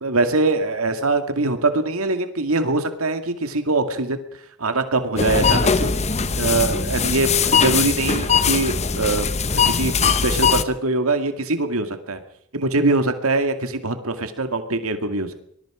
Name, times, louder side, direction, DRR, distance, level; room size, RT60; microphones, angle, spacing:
voice 1, 0.0-4.2 4.6-5.9 6.4-12.2 12.5-15.3, right 2 dB, 70° right, 8 dB, 2.2 m, -23 dB
sound 1, 5.2-10.6, left 5 dB, 30° left, 1.0 m, -20 dB
24.5 x 20.5 x 5.0 m, 0.72 s
head